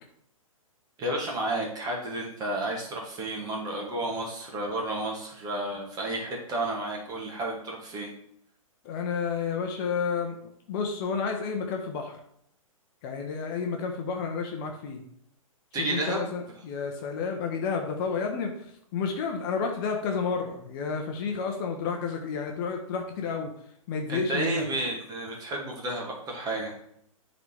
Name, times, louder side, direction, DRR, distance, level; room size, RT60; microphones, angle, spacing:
voice 1, 1.0-8.1 15.7-16.3 24.1-26.7, right 1 dB, 20° right, -1 dB, 2.1 m, -31 dB
voice 2, 8.8-10.3 10.7-12.2 13.0-15.0 15.8-18.5 18.9-23.5 23.9-24.6, left 5 dB, 40° left, 3 dB, 1.1 m, -30 dB
10.5 x 4.1 x 3.5 m, 0.71 s
figure-of-eight pair, 120°, 18 cm